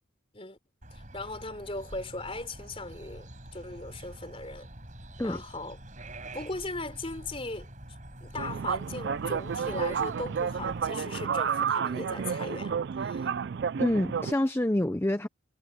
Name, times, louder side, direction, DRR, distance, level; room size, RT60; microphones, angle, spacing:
sound 1, 0.8-10.9, right 1 dB, 35° right, 7.8 m, -46 dB
voice 1, 0.9-4.7 5.2-5.8 6.3-7.7 8.2-13.3, left 2 dB, 25° left, 3.6 m, -38 dB
sound 2, 8.4-14.3, right 7 dB, 55° right, 0.3 m, -31 dB
voice 2, 13.8-15.3, left 1 dB, 10° left, 0.5 m, -27 dB
head